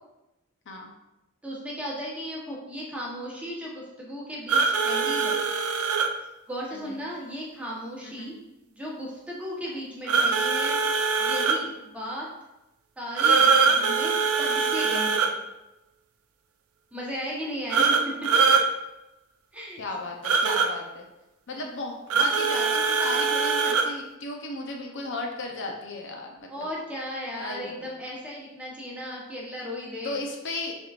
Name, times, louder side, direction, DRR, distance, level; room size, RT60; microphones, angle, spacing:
voice 1, 1.4-5.4 6.5-8.4 8.8-12.3 13.0-15.4 16.9-17.9 18.3-18.4 19.5-19.8 21.5-21.7 26.5-30.3, equal, 5° right, -5 dB, 1.0 m, -36 dB
sound 1, 4.5-6.1 10.1-11.6 13.2-15.3 17.7-18.7 20.2-20.7 22.1-23.9, right 5 dB, 75° right, 0.4 m, -22 dB
voice 2, 19.8-21.0 21.5-26.7 27.4-27.8 30.0-30.7, left 2 dB, 60° left, 1 dB, 0.6 m, -35 dB
6.0 x 3.6 x 2.4 m, 0.95 s
head